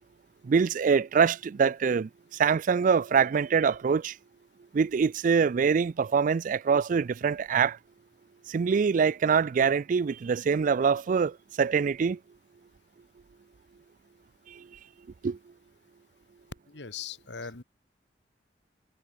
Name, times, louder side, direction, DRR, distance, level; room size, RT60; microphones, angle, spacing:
voice 1, 0.4-4.2 4.7-7.8 8.5-12.2 14.5-14.6 15.2-15.4, right 6 dB, 50° right, 0.3 m, -24 dB
voice 2, 16.7-17.6, left 6 dB, 85° left, 1.6 m, -40 dB
head